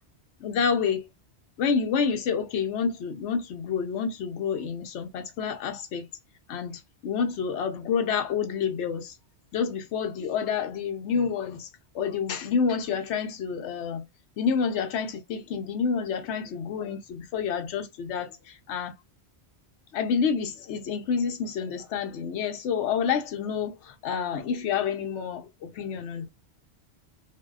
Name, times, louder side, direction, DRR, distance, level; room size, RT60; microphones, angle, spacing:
voice 1, 0.4-1.1 1.6-6.1 6.5-9.1 9.5-11.7 11.9-14.1 14.4-18.9 19.9-26.3, left 6 dB, 80° left, 0.9 m, -28 dB
2.7 x 2.1 x 2.3 m
omnidirectional pair, 1.2 m